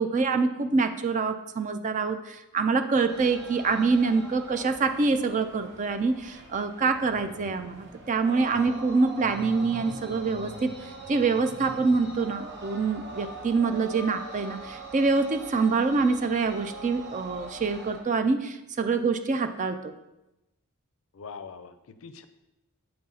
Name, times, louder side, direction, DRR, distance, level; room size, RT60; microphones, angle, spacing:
voice 1, 0.0-19.9, right 4 dB, 35° right, 9 dB, 0.4 m, -26 dB
sound 1, 3.1-18.0, right 2 dB, 50° right, 1.2 m, -43 dB
sound 2, 6.9-8.2 9.1-12.3 12.8-12.9, right 2 dB, 70° right, 1.0 m, -45 dB
voice 2, 21.1-22.2, left 5 dB, 65° left, 11 dB, 0.5 m, -43 dB
7.7 x 3.9 x 4.1 m, 0.94 s
head